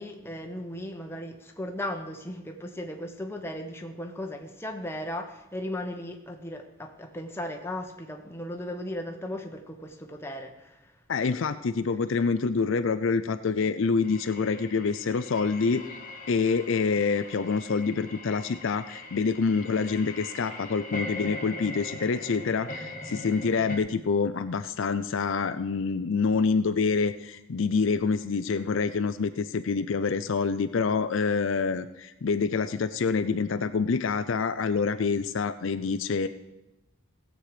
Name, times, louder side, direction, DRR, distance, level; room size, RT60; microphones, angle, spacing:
voice 1, 0.0-11.0, left 1 dB, 10° left, 1.0 m, -36 dB
voice 2, 11.1-16.0 16.3-36.3, left 5 dB, 60° left, 0.5 m, -26 dB
sound 1, 14.0-23.8, left 2 dB, 40° left, 1.3 m, -41 dB
17.0 x 7.6 x 4.9 m
head